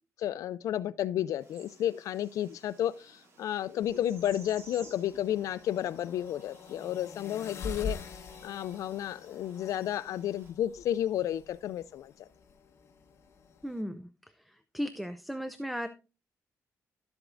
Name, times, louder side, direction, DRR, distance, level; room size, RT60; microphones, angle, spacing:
voice 1, 0.2-12.3, left 11 dB, 75° left, 0.3 m, -32 dB
sound 1, 1.4-10.5, right 3 dB, 50° right, 2.2 m, -57 dB
sound 2, 3.8-13.8, left 5 dB, 50° left, 1.1 m, -45 dB
voice 2, 13.6-14.1 14.7-15.9, equal, ahead, 0.4 m, -35 dB
11.5 x 7.9 x 2.5 m
cardioid pair, 150°, 6 cm